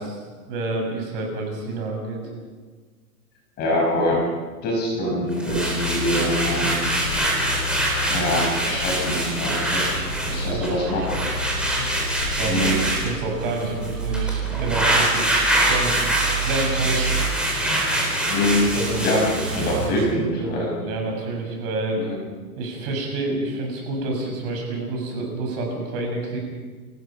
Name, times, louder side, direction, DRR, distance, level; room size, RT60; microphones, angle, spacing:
voice 1, 0.5-2.2 10.4-11.2 12.2-15.9 16.4-17.3 18.7-20.1 20.4-22.0 22.6-26.4, right 2 dB, 35° right, 1 dB, 6.6 m, -28 dB
voice 2, 3.6-4.2 4.6-6.8 8.1-10.0 10.3-11.0 12.5-12.8 18.3-18.7 19.0-19.2 19.5-20.9 22.0-22.2, equal, 20° left, -1 dB, 5.6 m, -24 dB
sound 1, 5.3-13.1 13.4-19.8, right 1 dB, ahead, 4.2 m, -25 dB
sound 2, 5.5-12.9, left 7 dB, 75° left, 3.7 m, -32 dB
sound 3, 6.9-20.1, right 6 dB, 85° right, 6.9 m, -32 dB
27.5 x 18.5 x 5.8 m, 1.4 s
hypercardioid pair, 165°, 47 cm